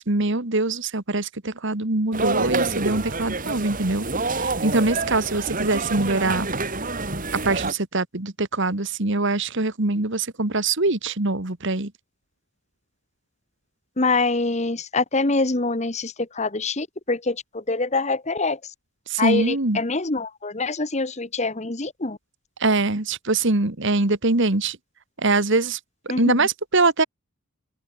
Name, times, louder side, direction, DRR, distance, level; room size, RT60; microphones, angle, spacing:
voice 1, 0.0-4.1 4.3-6.5 7.5-11.9 19.1-19.8 22.6-24.8 25.2-25.8 26.2-27.0, right 2 dB, 55° right, 1.7 m, -23 dB
sound 1, 2.1-7.7, right 3 dB, 40° right, 3.7 m, -27 dB
voice 2, 14.0-18.6 19.2-22.2 26.1-26.3, left 3 dB, 30° left, 1.2 m, -25 dB
open air
head